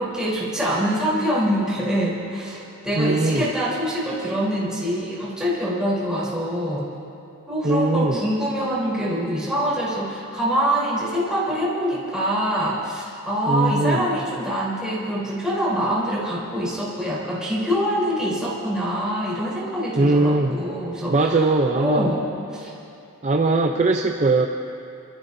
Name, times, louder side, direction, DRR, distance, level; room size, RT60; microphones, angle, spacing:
voice 1, 0.0-6.9 7.5-21.5 21.8-22.7, equal, 5° right, -8 dB, 3.4 m, -25 dB
voice 2, 3.0-3.5 7.6-8.2 13.5-14.1 20.0-20.5 21.1-22.1 23.2-24.5, right 2 dB, 30° right, 2 dB, 0.5 m, -20 dB
28.0 x 13.5 x 2.7 m, 2.7 s
head